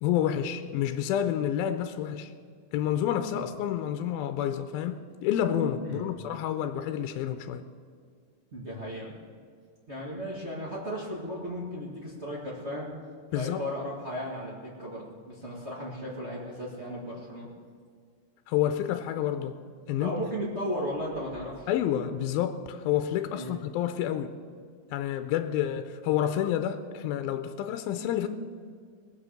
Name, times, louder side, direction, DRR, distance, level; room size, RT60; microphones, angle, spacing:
voice 1, 0.0-2.3 2.7-7.6 13.3-13.6 18.5-19.6 19.9-20.1 21.7-24.3 24.9-28.3, left 10 dB, 80° left, 2.3 m, -29 dB
voice 2, 8.5-9.1 9.9-12.9 13.3-17.5 20.0-21.7 23.3-23.6, equal, 60° right, 0.7 m, -35 dB
20.0 x 7.5 x 6.5 m
omnidirectional pair, 4.6 m